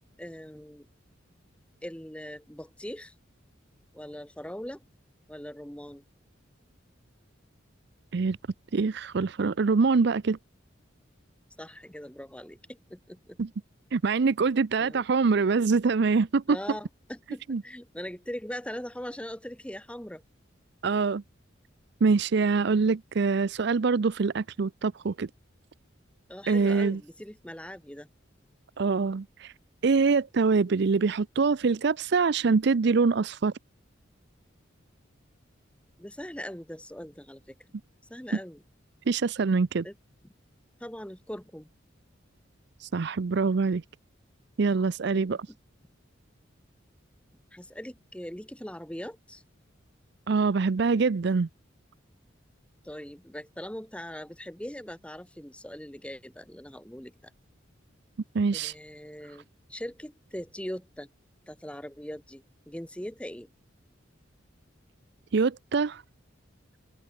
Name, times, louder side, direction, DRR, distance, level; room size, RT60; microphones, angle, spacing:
voice 1, 0.2-0.9 1.8-3.1 3.9-4.8 5.3-6.0 11.6-13.4 14.8-15.1 16.5-20.2 26.3-28.1 36.0-37.5 38.1-38.6 39.8-39.9 40.8-41.7 45.1-45.6 47.5-49.4 52.8-57.1 58.5-61.1 61.5-63.5, equal, 5° left, 1.7 m, -41 dB
voice 2, 8.7-10.4 13.4-13.5 13.9-16.6 17.5-17.6 20.8-21.2 22.0-25.3 26.5-27.0 28.8-29.5 29.8-33.5 39.1-39.9 42.8-43.8 44.6-45.4 50.3-51.5 58.3-58.7 65.3-66.0, right 4 dB, 60° right, 0.5 m, -24 dB
open air
head